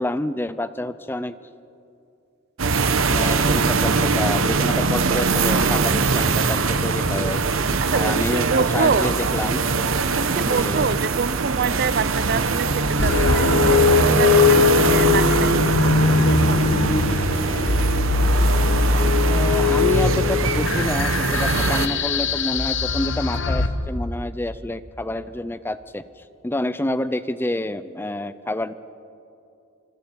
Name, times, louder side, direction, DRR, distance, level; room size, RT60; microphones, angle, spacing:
voice 1, 0.0-1.3 3.1-7.4 7.9-9.6 10.4-10.9 19.2-26.0 26.4-28.7, left 1 dB, 10° left, 13 dB, 0.5 m, -28 dB
sound 1, 2.6-21.9, right 4 dB, 75° right, 1.0 m, -22 dB
voice 2, 7.9-9.1 10.2-16.7, right 5 dB, 50° right, 15 dB, 0.6 m, -26 dB
sound 2, 13.0-23.7, left 4 dB, 60° left, 1.2 m, -20 dB
26.5 x 25.5 x 4.6 m, 2.6 s
head